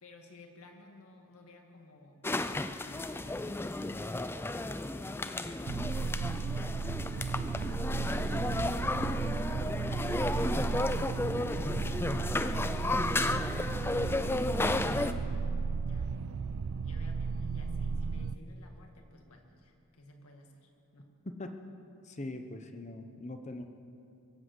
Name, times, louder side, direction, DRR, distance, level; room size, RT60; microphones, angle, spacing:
voice 1, 0.0-4.8 5.2-8.8 9.4-14.2 15.8-16.2 16.8-21.1, left 1 dB, 80° left, 3 dB, 1.9 m, -55 dB
sound 1, 2.2-15.1, left 2 dB, 10° left, 0.3 m, -33 dB
sound 2, 5.7-18.4, right 5 dB, 65° right, 0.4 m, -34 dB
voice 2, 14.9-15.3 21.2-21.5 22.0-23.6, left 2 dB, 30° left, 7 dB, 0.9 m, -41 dB
22.5 x 7.8 x 7.9 m, 2.6 s
head